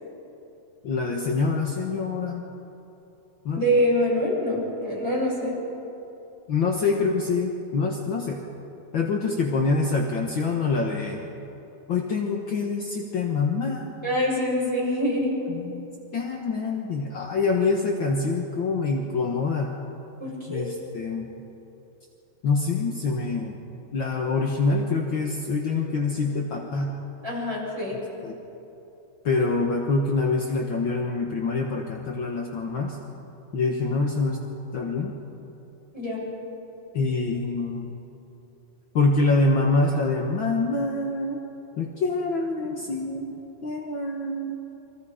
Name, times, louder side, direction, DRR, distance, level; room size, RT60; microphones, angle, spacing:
voice 1, 0.8-2.5 3.4-3.6 6.5-8.4 8.9-11.2 11.9-13.9 15.2-15.9 16.1-19.7 20.5-21.3 22.4-23.6 23.9-26.9 28.2-28.3 29.2-33.0 33.5-34.4 34.7-35.1 36.9-38.0 38.9-41.4 41.8-43.4 43.6-44.6, left 3 dB, 60° left, 1 dB, 1.2 m, -25 dB
voice 2, 3.5-5.5 14.0-15.4 20.2-20.7 27.2-28.0 35.9-36.2, equal, 5° right, -6 dB, 7.8 m, -25 dB
29.0 x 24.5 x 5.0 m, 2.9 s
omnidirectional pair, 4.1 m